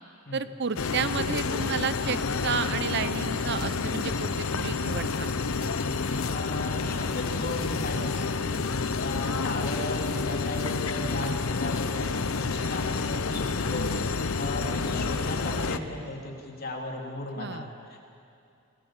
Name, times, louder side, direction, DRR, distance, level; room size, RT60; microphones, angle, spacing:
voice 1, 0.3-5.3 17.4-17.7, right 5 dB, 55° right, 13 dB, 0.8 m, -31 dB
sound 1, 0.8-15.8, left 4 dB, 85° left, 0.9 m, -29 dB
voice 2, 6.3-18.0, left 2 dB, 45° left, 0 dB, 3.5 m, -36 dB
28.5 x 20.0 x 7.5 m, 2.6 s
head